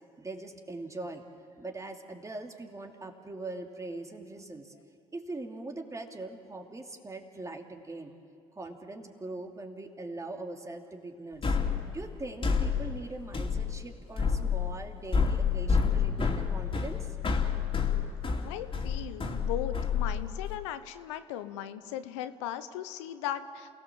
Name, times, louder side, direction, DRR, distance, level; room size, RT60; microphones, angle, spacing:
voice 1, 0.2-1.2 1.6-4.7 5.1-8.1 8.5-11.6 11.9-17.2, right 2 dB, 20° right, 3 dB, 2.8 m, -41 dB
sound 1, 11.4-20.5, left 6 dB, 35° left, 3.1 m, -29 dB
voice 2, 18.4-23.7, left 11 dB, 85° left, 11 dB, 0.9 m, -37 dB
28.5 x 17.0 x 7.5 m, 2.3 s
hypercardioid pair, 60°, 15 cm